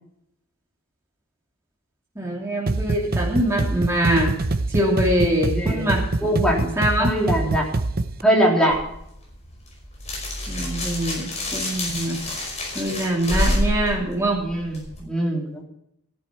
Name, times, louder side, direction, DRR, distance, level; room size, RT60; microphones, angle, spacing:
voice 1, 2.2-4.4 4.7-6.0 6.3-7.1 10.5-12.2 12.7-14.4, right 1 dB, 10° right, -3 dB, 2.7 m, -23 dB
sound 1, 2.7-8.2, right 2 dB, 45° right, 0.8 m, -25 dB
voice 2, 5.5-5.9 6.2-6.6 7.0-7.6 8.2-8.8 14.4-15.6, equal, 5° left, -3 dB, 3.6 m, -22 dB
sound 2, 8.7-15.0, left 1 dB, 30° left, 5.3 m, -28 dB
14.0 x 11.5 x 4.7 m, 0.76 s
head